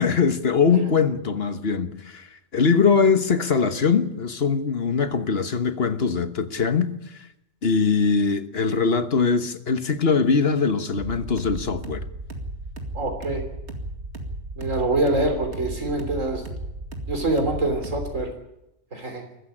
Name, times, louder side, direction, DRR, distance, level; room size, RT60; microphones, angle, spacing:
voice 1, 0.0-2.3 2.5-6.9 7.6-12.0, left 5 dB, 50° left, 1.5 m, -22 dB
sound 1, 10.9-18.3, right 1 dB, 55° right, 2.6 m, -35 dB
voice 2, 12.9-13.4 14.6-16.4 17.1-18.3 18.9-19.2, right 2 dB, 75° right, 3.9 m, -25 dB
21.5 x 15.0 x 10.0 m
omnidirectional pair, 1.4 m